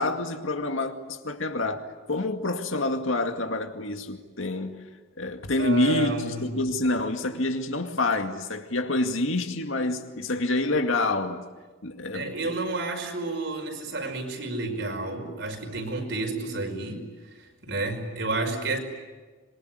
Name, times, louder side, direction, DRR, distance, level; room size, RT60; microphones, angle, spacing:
voice 1, 0.0-4.9 5.2-11.5 11.8-12.5, left 2 dB, 70° left, 2.2 m, -27 dB
voice 2, 5.6-6.5 12.1-17.1 17.4-18.8, right 2 dB, 60° right, 5.4 m, -31 dB
26.5 x 22.5 x 9.5 m
head